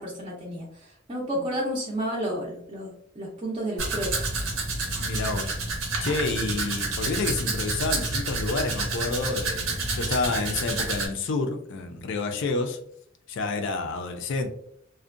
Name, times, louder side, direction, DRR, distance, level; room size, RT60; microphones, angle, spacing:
voice 1, 0.0-4.2, equal, 25° right, -4 dB, 0.5 m, -31 dB
Domestic sounds home sounds, 3.8-11.1, right 3 dB, 75° right, 0.7 m, -29 dB
voice 2, 5.0-5.5 6.0-12.8 13.3-14.5, left 3 dB, 60° left, 6 dB, 0.4 m, -29 dB
2.5 x 2.1 x 2.4 m, 0.68 s
head